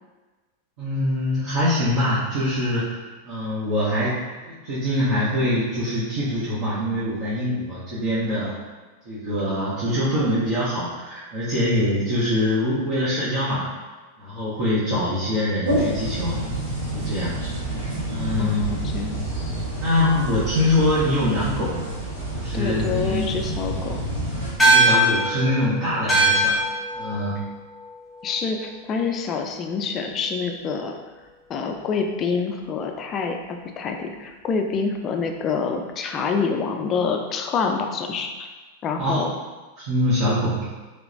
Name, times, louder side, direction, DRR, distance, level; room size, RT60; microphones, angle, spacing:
voice 1, 0.8-3.0 3.2-8.5 9.0-13.7 14.2-16.4 16.9-17.3 18.1-18.6 19.7-21.8 22.3-23.3 24.6-26.6 26.9-27.4 39.0-39.2 39.8-40.7, left 1 dB, 45° right, -11 dB, 1.0 m, -24 dB
sound 1, 15.6-24.5, right 1 dB, 75° right, 1.4 m, -28 dB
voice 2, 18.4-19.2 22.5-24.0 28.2-31.0 31.5-38.5 38.8-39.3, left 5 dB, 30° left, 4 dB, 0.4 m, -27 dB
sound 2, 24.6-29.3, right 1 dB, 5° left, 1.1 m, -22 dB
3.3 x 2.9 x 2.6 m, 1.3 s
figure-of-eight pair, 90°, 0 cm